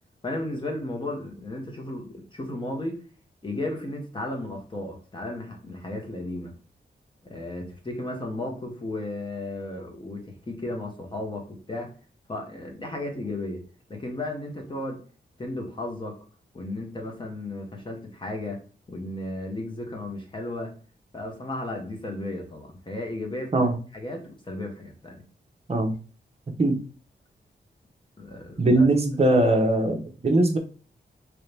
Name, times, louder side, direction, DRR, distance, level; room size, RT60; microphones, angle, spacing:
voice 1, 0.2-3.0 3.4-6.5 7.2-11.9 12.3-13.6 13.9-15.0 15.4-16.2 16.5-18.6 18.9-20.7 21.1-23.7 23.9-25.2 28.2-28.8, left 2 dB, 25° left, 2 dB, 1.1 m, -34 dB
voice 2, 28.6-30.6, right 2 dB, 35° right, 4 dB, 0.8 m, -21 dB
3.2 x 2.8 x 3.2 m, 0.39 s
wide cardioid pair, 110°, 18 cm